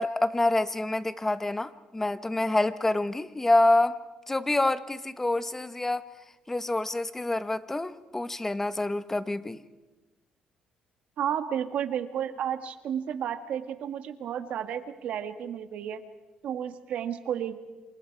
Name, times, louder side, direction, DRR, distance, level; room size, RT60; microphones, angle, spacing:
voice 1, 0.0-4.0 4.3-6.0 6.5-9.6, left 2 dB, 15° left, 12 dB, 1.3 m, -27 dB
voice 2, 11.2-16.0 16.4-17.6, right 9 dB, 70° right, 9 dB, 1.8 m, -32 dB
28.0 x 27.0 x 4.8 m, 1.2 s
cardioid pair, 90°, 2 cm